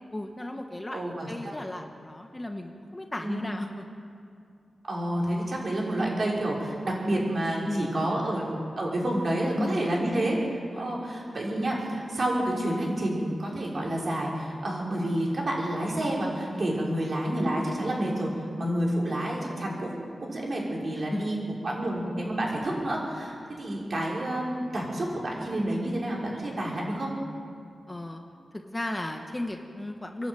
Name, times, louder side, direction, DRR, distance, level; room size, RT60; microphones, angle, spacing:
voice 1, 0.1-3.8 7.6-7.9 9.6-9.9 10.7-11.1 16.5-16.6 18.5-18.7 21.1-21.3 27.9-28.2 28.6-30.3, left 1 dB, 20° left, 4 dB, 1.4 m, -35 dB
voice 2, 0.9-1.6 3.2-3.4 4.9-18.3 18.6-27.1, right 1 dB, 50° right, -3 dB, 5.7 m, -29 dB
26.5 x 11.5 x 9.2 m, 2.5 s
wide cardioid pair, 100°, 0 cm